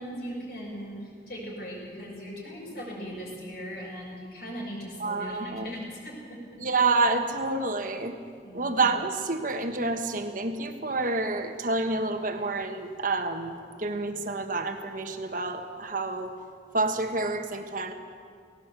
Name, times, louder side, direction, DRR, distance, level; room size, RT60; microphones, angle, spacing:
voice 1, 0.0-6.4 8.4-8.7, equal, 60° left, -6 dB, 5.9 m, -38 dB
voice 2, 5.0-5.7 6.6-8.1 8.5-16.3 16.7-17.9, right 3 dB, 50° right, 6 dB, 1.5 m, -28 dB
18.0 x 17.5 x 8.3 m, 2.2 s
head